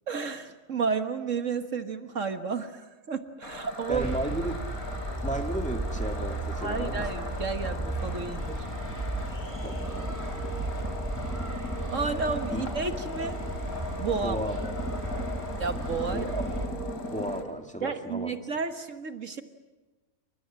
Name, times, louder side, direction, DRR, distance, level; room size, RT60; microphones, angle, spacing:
voice 1, 0.1-4.1 6.6-8.6 11.9-13.4 14.0-14.4 15.6-16.3 17.8-19.4, right 5 dB, 60° right, 8 dB, 1.7 m, -32 dB
sound 1, 3.4-17.4, left 2 dB, 75° left, 3.9 m, -38 dB
voice 2, 3.9-4.5 5.2-7.0 9.6-10.6 12.5-12.6 14.2-14.7 16.1-16.5 17.0-18.3, right 1 dB, 5° left, 4 dB, 2.3 m, -34 dB
sound 2, 3.9-16.7, right 2 dB, 10° right, 4.5 m, -34 dB
29.0 x 24.5 x 7.6 m, 1.2 s
omnidirectional pair, 1.5 m